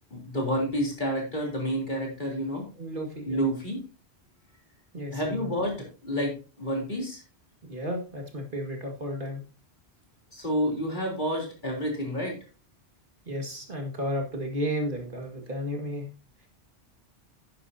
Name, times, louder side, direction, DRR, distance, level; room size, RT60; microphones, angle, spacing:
voice 1, 0.1-2.6 3.3-3.8 5.1-7.2 10.3-12.4, equal, 45° left, -1 dB, 3.7 m, -29 dB
voice 2, 2.8-3.4 4.9-5.5 7.7-9.4 13.3-16.0, equal, 50° right, 2 dB, 2.2 m, -33 dB
10.5 x 10.5 x 2.8 m, 0.32 s
omnidirectional pair, 1.1 m